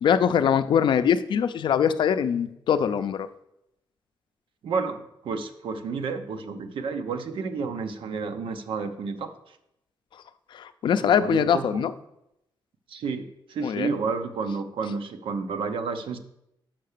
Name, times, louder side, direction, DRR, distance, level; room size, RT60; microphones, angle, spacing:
voice 1, 0.0-3.3 10.5-11.9 13.6-13.9, left 8 dB, 65° left, 11 dB, 0.4 m, -22 dB
voice 2, 4.6-9.3 11.0-11.9 12.9-16.2, right 4 dB, 90° right, 8 dB, 0.8 m, -31 dB
5.9 x 5.6 x 6.6 m, 0.82 s
wide cardioid pair, 150°, 8 cm